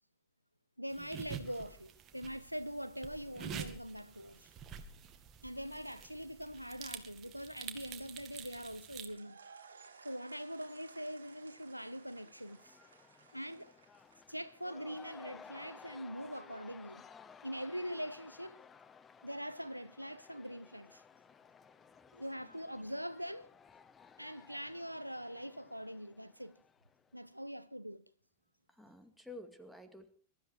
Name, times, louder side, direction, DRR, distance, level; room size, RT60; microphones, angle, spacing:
voice 1, 0.8-4.5 5.4-9.4 10.0-12.8 13.3-13.7 14.3-17.1 17.4-18.6 19.2-21.0 22.1-23.5 24.2-26.6 27.1-28.1, equal, 90° right, 0.7 m, -43 dB
sound 1, 0.9-9.1, right 8 dB, 30° right, 2.1 m, -48 dB
sound 2, 9.0-15.0, right 5 dB, 70° right, 2.4 m, -59 dB
Cheering / Crowd, 10.4-27.3, left 6 dB, 20° left, 1.0 m, -58 dB
voice 2, 28.7-30.1, left 2 dB, ahead, 2.3 m, -51 dB
22.5 x 13.0 x 4.8 m
figure-of-eight pair, 90°, 0 cm